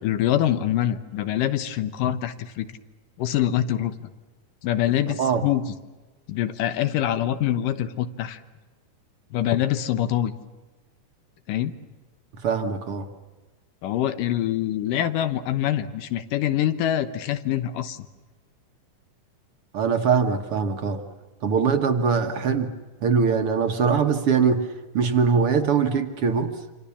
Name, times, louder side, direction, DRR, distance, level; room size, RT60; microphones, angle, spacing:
voice 1, 0.0-2.7 3.2-4.1 4.6-5.7 6.3-8.4 9.3-10.3 11.5-11.7 13.8-18.0, left 11 dB, 75° left, 11 dB, 2.7 m, -25 dB
voice 2, 12.4-13.1 19.7-21.0 21.4-22.7 23.0-24.6 24.9-26.5, right 6 dB, 55° right, 6 dB, 1.8 m, -22 dB
27.5 x 26.5 x 7.1 m, 1.2 s
omnidirectional pair, 3.9 m